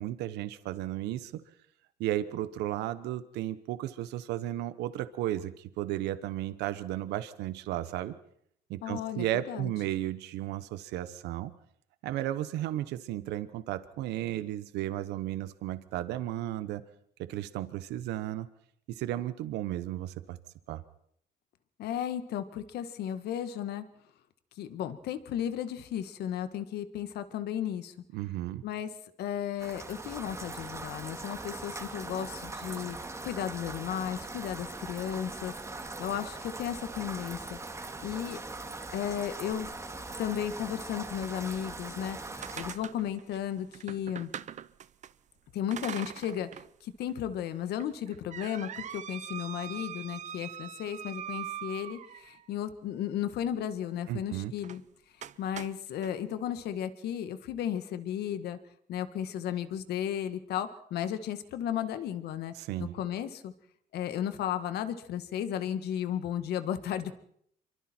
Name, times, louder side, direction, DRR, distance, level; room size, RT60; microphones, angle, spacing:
voice 1, 0.0-1.4 2.0-8.1 8.7-11.5 12.0-16.8 17.2-18.5 18.9-20.4 20.7-20.8 28.1-28.6 54.1-54.5 62.6-62.9, right 13 dB, 85° right, 13 dB, 1.1 m, -34 dB
voice 2, 8.8-9.7 21.8-23.8 24.6-27.9 28.6-28.9 29.2-33.0 33.2-38.4 38.9-39.7 40.2-44.3 45.5-46.5 46.8-54.8 55.4-58.6 58.9-62.5 62.8-63.5 63.9-67.1, left 10 dB, 75° left, 10 dB, 1.7 m, -34 dB
Rain, 29.6-42.7, right 2 dB, 15° right, 2.2 m, -41 dB
sound 1, 42.1-45.1 45.7-46.7 47.1-47.2 47.8-52.5 54.6-54.8 55.2-56.1, right 10 dB, 45° right, 0.7 m, -42 dB
26.5 x 23.5 x 4.5 m, 0.67 s
cardioid pair, 110°, 17 cm